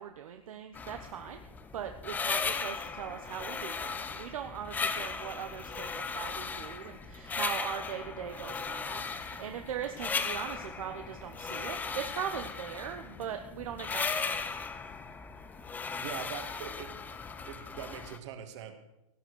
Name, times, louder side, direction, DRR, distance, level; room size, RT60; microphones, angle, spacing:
voice 1, 0.0-1.4 1.7-14.6, right 9 dB, 65° right, 5 dB, 1.3 m, -40 dB
sound 1, 0.7-18.2, left 5 dB, 10° left, 0.7 m, -37 dB
voice 2, 16.0-16.9 17.5-18.8, right 9 dB, 50° right, 6 dB, 2.4 m, -42 dB
17.5 x 9.4 x 6.4 m, 0.92 s
hypercardioid pair, 145°, 18 cm